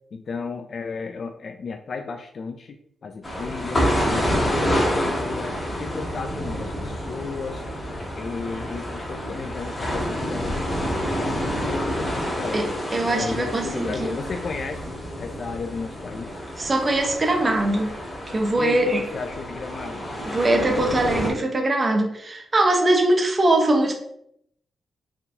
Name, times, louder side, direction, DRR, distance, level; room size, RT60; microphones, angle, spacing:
voice 1, 0.1-2.8 3.0-7.6 8.1-12.7 13.0-16.4 18.6-20.1, left 4 dB, 50° left, 5 dB, 0.3 m, -34 dB
sound 1, 3.2-21.3, equal, 30° left, 1.7 m, -28 dB
voice 2, 12.5-14.2 16.6-17.9 18.3-19.0 20.3-23.9, right 1 dB, 30° right, 3 dB, 0.8 m, -22 dB
4.3 x 3.9 x 2.7 m, 0.74 s
cardioid pair, 105°, 0 cm